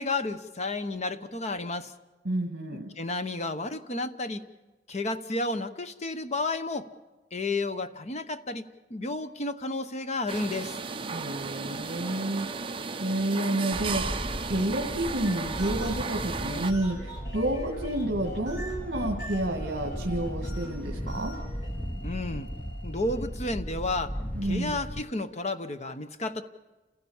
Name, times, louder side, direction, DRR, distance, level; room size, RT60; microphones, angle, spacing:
voice 1, 0.0-1.9 3.0-4.4 4.9-6.9 7.3-8.6 8.9-10.7 22.0-22.5 22.8-24.2 24.4-26.4, left 2 dB, 35° left, 10 dB, 0.9 m, -31 dB
voice 2, 2.2-2.9 11.1-12.5 13.0-14.1 14.4-17.0 17.3-21.3 24.3-24.8, right 1 dB, 60° right, 1 dB, 2.0 m, -30 dB
sound 1, 10.3-16.7, right 4 dB, 30° right, 0.8 m, -34 dB
Wind, 13.7-25.0, equal, 5° left, 0.7 m, -36 dB
sound 2, 15.1-23.4, left 2 dB, 65° left, 3.7 m, -43 dB
29.5 x 16.0 x 7.2 m, 1.2 s
head